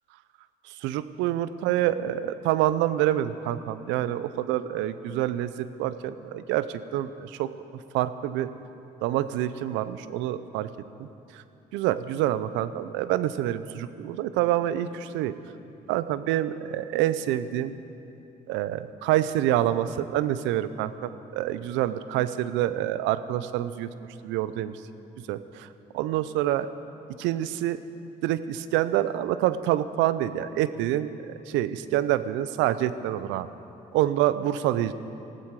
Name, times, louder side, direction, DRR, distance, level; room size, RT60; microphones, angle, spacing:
voice 1, 0.6-7.5 7.9-8.5 9.0-10.7 11.0-11.1 11.3-11.4 11.7-15.4 15.9-17.7 18.5-23.9 24.2-24.8 25.3-25.7 25.9-26.7 27.2-27.8 28.2-33.5 33.9-34.9, right 13 dB, 85° right, 14 dB, 0.6 m, -27 dB
19.5 x 15.5 x 4.8 m, 2.9 s
supercardioid pair, 55°, 19 cm